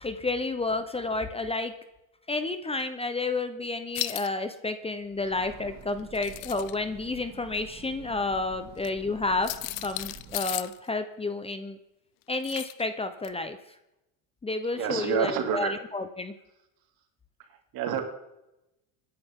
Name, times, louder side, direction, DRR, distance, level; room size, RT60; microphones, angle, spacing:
voice 1, 0.0-1.7 2.3-9.5 9.8-11.8 12.3-13.6 14.4-16.3, left 3 dB, 15° left, 9 dB, 1.0 m, -30 dB
sound 1, 3.9-4.3 6.0-6.7 8.8-8.9 9.4-10.8 12.4-12.8 13.2-13.3, left 18 dB, 80° left, 0.9 m, -35 dB
Train, 5.0-10.7, right 6 dB, 45° right, 2.1 m, -48 dB
voice 2, 14.7-15.7 17.7-18.0, right 7 dB, 60° right, 4 dB, 3.3 m, -27 dB
27.0 x 10.5 x 3.8 m, 0.92 s
supercardioid pair, 110°, 40 cm